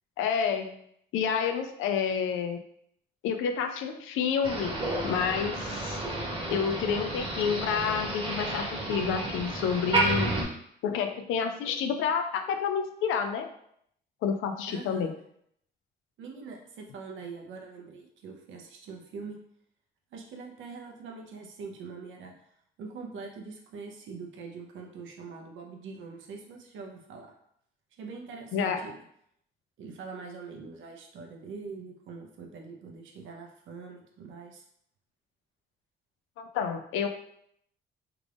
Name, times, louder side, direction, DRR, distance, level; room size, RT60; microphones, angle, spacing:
voice 1, 0.2-0.8 1.1-2.6 3.2-6.0 6.5-10.4 10.8-13.5 14.2-15.1 28.5-28.8 36.4-37.1, left 7 dB, 90° left, 7 dB, 0.4 m, -29 dB
Motor vehicle (road), 4.4-10.4, right 2 dB, 25° right, 1.0 m, -31 dB
voice 2, 14.7-15.1 16.2-19.4 20.1-22.3 22.8-27.3 28.0-29.0 29.8-34.6, right 4 dB, 80° right, 1 dB, 0.8 m, -43 dB
3.4 x 2.5 x 3.4 m, 0.70 s
cardioid pair, 90°, 20 cm